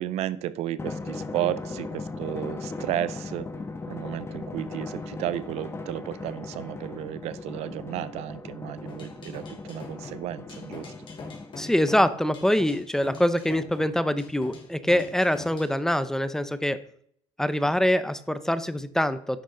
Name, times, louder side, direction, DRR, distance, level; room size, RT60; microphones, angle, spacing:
voice 1, 0.0-3.5 3.9-10.9, right 12 dB, 80° right, 17 dB, 0.6 m, -33 dB
Drum, 0.8-11.8, left 3 dB, 25° left, 1.1 m, -38 dB
sound 1, 8.9-15.8, left 3 dB, 50° left, 2.9 m, -43 dB
voice 2, 11.5-16.8 17.4-19.4, left 1 dB, 5° left, 13 dB, 0.7 m, -24 dB
10.5 x 6.5 x 3.8 m, 0.64 s
cardioid pair, 105°, 11 cm